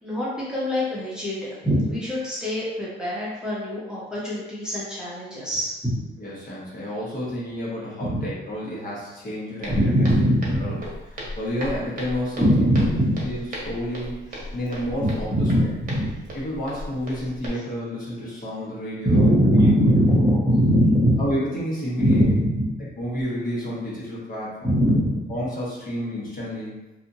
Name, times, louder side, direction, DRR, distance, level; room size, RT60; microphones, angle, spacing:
voice 1, 0.0-6.0 8.0-8.3 9.7-10.8 12.4-13.1 15.0-16.2 19.0-21.2 22.0-22.7 24.6-25.2, equal, 5° right, -8 dB, 0.9 m, -21 dB
voice 2, 6.2-10.1 10.5-10.8 11.1-12.7 13.2-15.5 16.3-19.3 19.5-19.7 21.2-22.2 23.0-24.8 25.3-26.7, equal, 45° left, -7 dB, 1.2 m, -30 dB
Walk footsteps, 9.6-17.5, equal, 45° right, 1.0 m, -36 dB
2.7 x 2.4 x 2.7 m, 1.0 s
cardioid pair, 90°, 20 cm